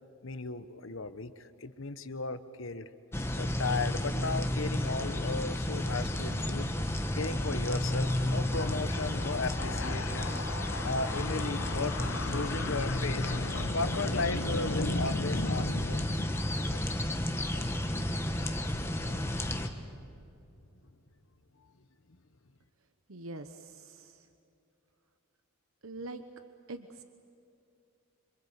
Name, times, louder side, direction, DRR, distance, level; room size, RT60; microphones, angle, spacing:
voice 1, 0.2-2.9 3.4-19.2, left 3 dB, 70° left, 11 dB, 1.1 m, -35 dB
sound 1, 3.1-19.7, left 1 dB, 10° left, 1.3 m, -32 dB
voice 2, 23.1-24.3 25.8-26.2 26.7-27.0, right 2 dB, 80° right, 8 dB, 1.1 m, -43 dB
27.0 x 25.5 x 8.1 m, 2.6 s
head